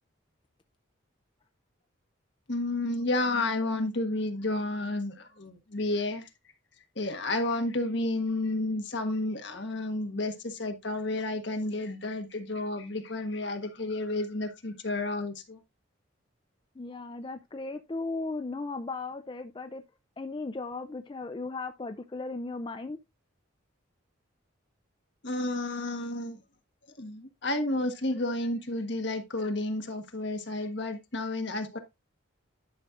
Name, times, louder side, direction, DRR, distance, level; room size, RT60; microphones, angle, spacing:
voice 1, 2.5-6.3 7.0-15.6 25.2-26.4 27.0-31.8, left 2 dB, 60° left, 1.4 m, -31 dB
voice 2, 16.8-19.8 20.2-23.0, left 3 dB, 25° left, 0.4 m, -36 dB
11.0 x 6.1 x 2.4 m
head